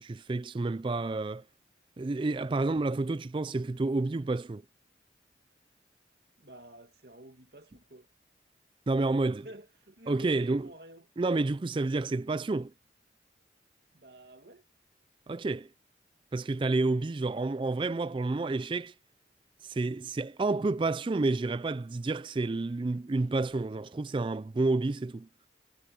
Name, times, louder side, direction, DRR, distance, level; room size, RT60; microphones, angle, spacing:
voice 1, 0.0-1.4 2.0-4.6 8.9-9.5 10.1-10.7 11.2-12.7 15.3-15.7 16.3-18.9 19.6-25.3, right 3 dB, 25° right, 0.3 m, -29 dB
voice 2, 6.4-8.1 9.4-11.1 11.9-12.2 13.9-14.6, right 1 dB, 60° right, 2.3 m, -50 dB
head